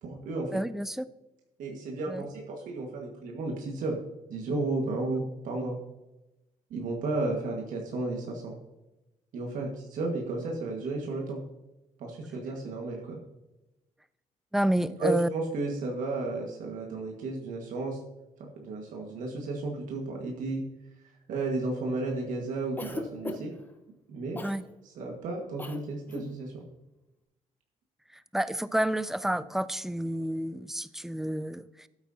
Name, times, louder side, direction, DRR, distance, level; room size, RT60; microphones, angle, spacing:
voice 1, 0.0-0.5 1.6-4.0 4.3-5.7 6.7-8.5 9.3-11.4 12.0-13.2 15.0-18.0 18.4-20.6 21.0-23.5 24.1-24.4 24.8-26.6, right 2 dB, 75° right, 0 dB, 1.6 m, -33 dB
voice 2, 0.5-1.1 2.1-2.2 14.5-15.3 24.4-24.7 28.1-31.9, right 1 dB, 5° right, 15 dB, 0.3 m, -30 dB
Cough, 22.8-23.6 24.4-24.6 25.6-25.8 26.1-26.3, left 2 dB, 15° left, 0.9 m, -37 dB
12.5 x 8.8 x 2.7 m, 0.99 s
cardioid pair, 115°, 14 cm